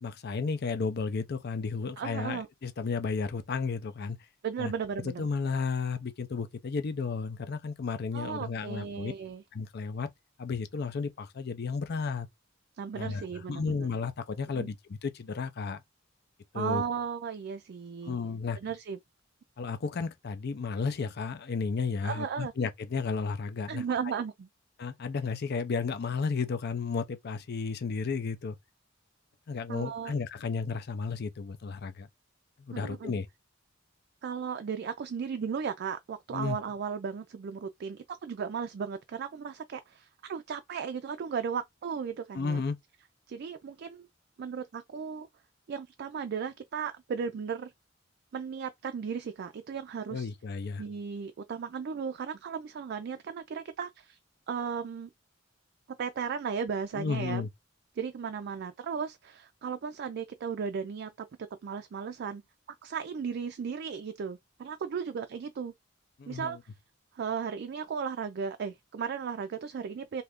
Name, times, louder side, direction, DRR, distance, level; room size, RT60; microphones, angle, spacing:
voice 1, 0.0-4.2 4.6-4.7 5.2-9.1 9.5-10.1 10.4-12.3 12.9-13.2 13.5-15.8 16.5-16.8 18.0-18.6 19.6-23.8 24.8-28.6 29.5-32.1 32.6-33.3 36.3-36.6 42.3-42.8 50.1-50.8 56.9-57.5 66.2-66.6, left 5 dB, 55° left, 0.5 m, -33 dB
voice 2, 2.0-2.5 4.4-5.3 8.1-9.4 12.8-13.9 14.5-14.7 16.5-18.2 18.6-19.0 22.0-22.5 23.7-24.5 29.7-30.1 32.7-33.1 34.2-42.6 43.3-44.1 44.4-45.3 45.7-47.7 48.3-50.3 50.8-54.2 54.5-55.1 56.0-57.5 58.0-61.3 61.6-62.4 62.8-65.7 66.3-66.6 67.1-70.2, right 6 dB, 55° right, 0.3 m, -35 dB
2.7 x 2.4 x 3.4 m
head